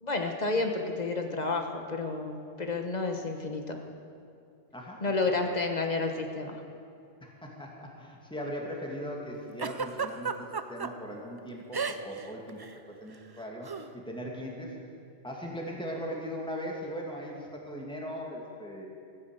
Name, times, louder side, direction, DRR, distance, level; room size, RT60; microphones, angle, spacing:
voice 1, 0.0-3.8 5.0-6.6, left 3 dB, 40° left, 4 dB, 1.4 m, -30 dB
voice 2, 4.7-5.1 5.4-5.5 7.2-12.6 12.9-13.7 13.9-14.8 15.2-18.9, equal, 5° left, -2 dB, 2.3 m, -39 dB
Giggle, 9.6-10.9 11.7-12.2 12.5-12.7 13.7-13.9, right 5 dB, 35° right, 0.4 m, -32 dB
15.5 x 9.6 x 8.2 m, 2.5 s
omnidirectional pair, 1.1 m